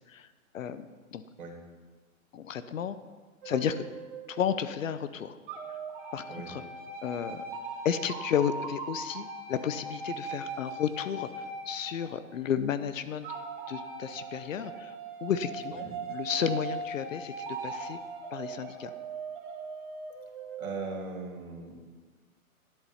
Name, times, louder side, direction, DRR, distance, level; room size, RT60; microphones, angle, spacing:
voice 1, 0.5-0.9 1.1-1.2 2.3-3.0 3.4-3.8 4.3-5.4 6.1-6.6 7.0-7.4 7.8-13.3 13.7-14.9 15.2-17.3 17.6-18.0 18.3-18.9, left 8 dB, 65° left, 13 dB, 0.8 m, -32 dB
sound 1, 3.4-5.0 5.5-12.6 13.2-20.7, right 3 dB, 35° right, 1.4 m, -40 dB
voice 2, 20.6-21.8, right 4 dB, 80° right, 1 dB, 2.9 m, -39 dB
10.5 x 8.3 x 5.7 m, 1.4 s
hypercardioid pair, 165°, 42 cm